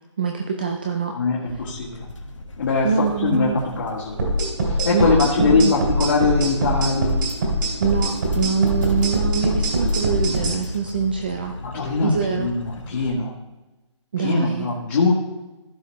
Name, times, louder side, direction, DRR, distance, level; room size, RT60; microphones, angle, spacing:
voice 1, 0.2-1.2 2.8-3.6 4.9-5.8 7.8-11.5 12.0-12.5 14.1-14.7, right 6 dB, 20° right, 3 dB, 0.4 m, -24 dB
voice 2, 1.1-2.1 2.6-4.1 4.6-7.2 11.7-13.3 14.2-15.1, left 4 dB, 40° left, -5 dB, 1.7 m, -22 dB
sound 1, 1.4-13.1, left 1 dB, 85° left, 1.6 m, -38 dB
sound 2, 4.2-10.6, right 1 dB, 40° right, 2.8 m, -22 dB
15.0 x 5.6 x 3.1 m, 1.1 s
hypercardioid pair, 165°, 16 cm